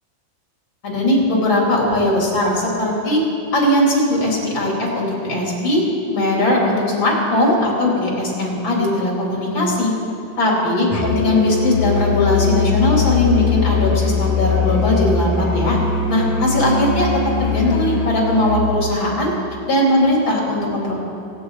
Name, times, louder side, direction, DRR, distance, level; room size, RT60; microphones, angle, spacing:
voice 1, 0.8-3.2 3.5-5.8 6.1-9.9 10.4-15.8 16.1-17.1 17.4-19.3 19.7-20.9, left 1 dB, 85° left, -3 dB, 4.0 m, -19 dB
Musical instrument, 10.9-18.7, left 5 dB, 30° left, 1.0 m, -21 dB
25.0 x 8.7 x 4.8 m, 2.8 s
omnidirectional pair, 2.1 m